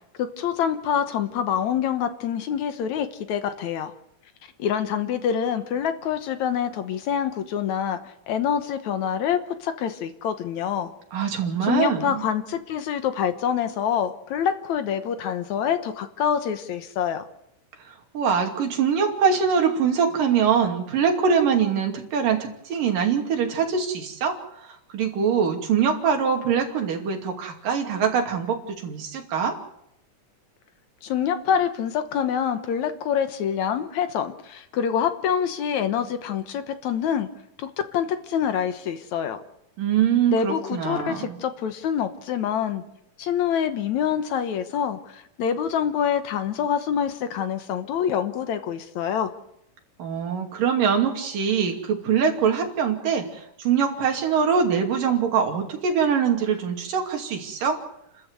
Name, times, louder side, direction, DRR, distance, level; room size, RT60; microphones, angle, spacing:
voice 1, 0.2-3.9 4.6-8.0 8.3-10.9 11.6-17.3 31.0-37.3 37.6-39.4 40.3-42.8 43.2-49.3, left 8 dB, 65° left, 9 dB, 2.3 m, -26 dB
voice 2, 11.1-12.2 18.1-24.3 24.9-29.6 39.8-41.4 50.0-57.8, right 7 dB, 90° right, 3 dB, 4.3 m, -23 dB
29.5 x 13.5 x 8.1 m, 0.80 s
omnidirectional pair, 3.7 m